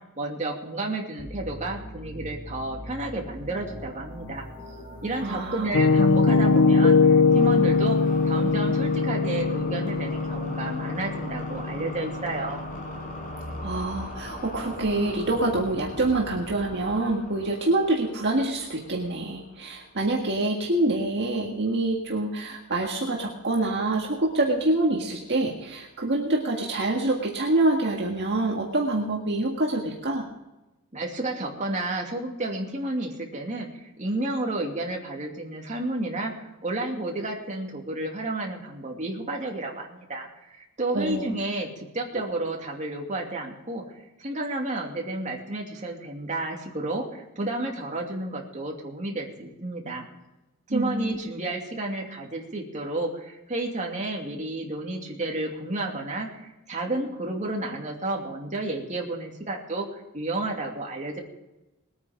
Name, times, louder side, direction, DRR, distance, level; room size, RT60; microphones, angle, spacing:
voice 1, 0.2-4.5 5.0-8.0 8.2-12.6 30.9-43.8 44.2-50.1 50.7-59.9 60.1-61.2, right 2 dB, 35° right, 0 dB, 2.6 m, -31 dB
sound 1, 1.2-19.6, left 1 dB, 40° left, 5.4 m, -40 dB
voice 2, 5.2-5.7 13.6-30.2 40.9-41.3 42.1-42.2 50.7-51.2, right 2 dB, 50° right, -1 dB, 1.8 m, -26 dB
Piano, 5.7-13.6, left 4 dB, 70° left, 0.6 m, -22 dB
20.5 x 9.4 x 5.1 m, 1.0 s
head